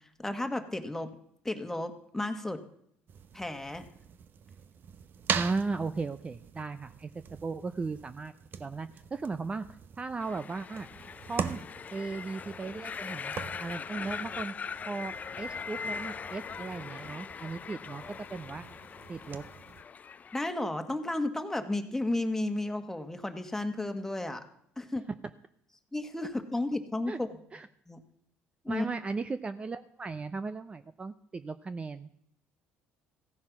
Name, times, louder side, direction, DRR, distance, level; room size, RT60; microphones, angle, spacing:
voice 1, 0.2-1.1 1.4-2.6 3.3-3.8 20.3-24.4 24.8-25.1 25.9-27.4 27.9-28.0 28.6-28.9, left 2 dB, 10° left, 7 dB, 1.7 m, -33 dB
sound 1, 3.1-19.8, right 7 dB, 50° right, 0.9 m, -42 dB
voice 2, 5.3-8.3 8.6-9.7 10.0-10.9 11.2-11.6 11.9-14.5 14.9-18.6 19.1-19.5 27.1-27.2 27.5-27.7 28.7-32.1, right 4 dB, 25° right, 11 dB, 0.7 m, -36 dB
sound 2, 10.2-20.5, left 6 dB, 35° left, 0.5 m, -41 dB
15.5 x 9.5 x 6.0 m, 0.71 s
supercardioid pair, 85°, 4 cm